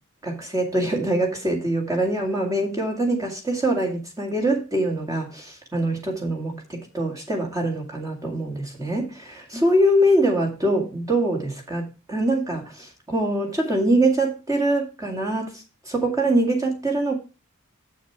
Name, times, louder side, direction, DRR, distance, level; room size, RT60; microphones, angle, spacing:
voice 1, 0.2-17.1, right 1 dB, 15° right, 2.0 m, -24 dB
7.7 x 6.8 x 4.6 m
head